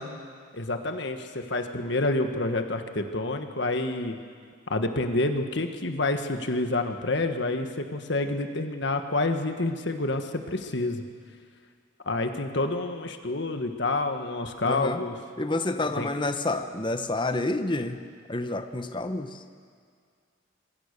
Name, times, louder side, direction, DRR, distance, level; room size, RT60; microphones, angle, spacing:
voice 1, 0.5-4.2 4.7-11.0 12.0-15.2 15.9-16.1, left 2 dB, 60° left, 6 dB, 1.6 m, -28 dB
voice 2, 14.7-15.0 15.4-18.0 18.3-19.3, left 2 dB, 25° left, 8 dB, 1.0 m, -28 dB
26.0 x 23.5 x 6.8 m, 2.1 s
head